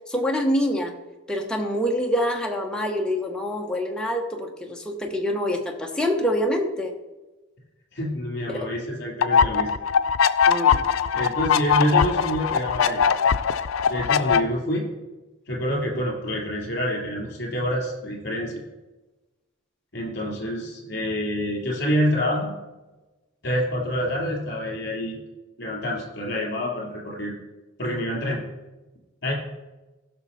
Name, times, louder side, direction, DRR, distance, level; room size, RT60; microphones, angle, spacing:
voice 1, 0.1-0.9 1.3-6.9 8.5-8.7 10.5-10.8, equal, 5° left, 1 dB, 1.1 m, -26 dB
voice 2, 7.9-9.7 11.1-13.1 13.9-14.9 15.5-18.6 19.9-22.6 23.4-25.2 25.6-27.3 27.8-28.4 29.2-29.3, equal, 55° left, -2 dB, 3.5 m, -27 dB
sound 1, 9.2-14.4, left 7 dB, 85° left, 0.4 m, -21 dB
15.5 x 6.0 x 4.2 m, 1.1 s
head